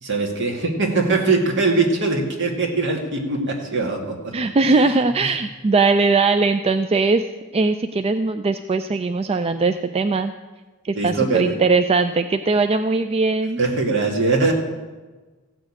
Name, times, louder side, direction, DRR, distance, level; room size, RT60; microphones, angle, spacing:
voice 1, 0.0-4.3 10.9-11.6 13.6-14.5, right 3 dB, 60° right, 1 dB, 2.4 m, -21 dB
voice 2, 4.3-7.2 7.5-10.3 10.8-13.6, right 3 dB, 30° right, 9 dB, 0.4 m, -20 dB
15.0 x 6.4 x 8.8 m, 1.3 s
head